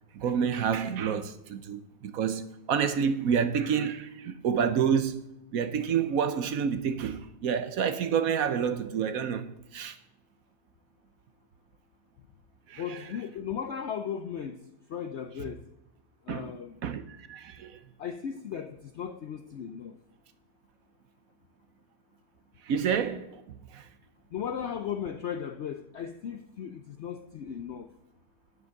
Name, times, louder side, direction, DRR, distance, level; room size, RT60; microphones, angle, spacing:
voice 1, 0.1-5.2 5.5-10.0 12.7-13.0 16.3-16.5 16.8-17.8 22.6-23.9, right 7 dB, 65° right, 1.1 m, -29 dB
voice 2, 12.8-14.6 14.9-15.6 16.3-16.8 18.0-20.0 24.3-27.9, left 8 dB, 70° left, 0.6 m, -36 dB
9.9 x 8.1 x 6.4 m
omnidirectional pair, 1.8 m